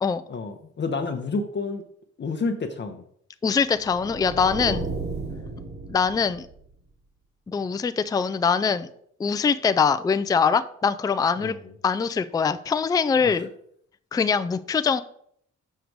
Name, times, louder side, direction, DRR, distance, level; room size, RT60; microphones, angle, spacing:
voice 1, 0.3-1.8 2.2-3.0 4.7-4.8 11.4-11.5 13.2-13.3, left 4 dB, 35° left, 6 dB, 0.8 m, -29 dB
voice 2, 3.4-4.9 5.9-6.5 7.5-8.9 9.2-11.5 11.8-13.5 14.1-15.0, left 6 dB, 15° left, 12 dB, 0.3 m, -23 dB
sound 1, 3.8-6.7, right 3 dB, 45° right, 1.7 m, -34 dB
6.6 x 5.0 x 4.6 m, 0.66 s
cardioid pair, 90°, 30 cm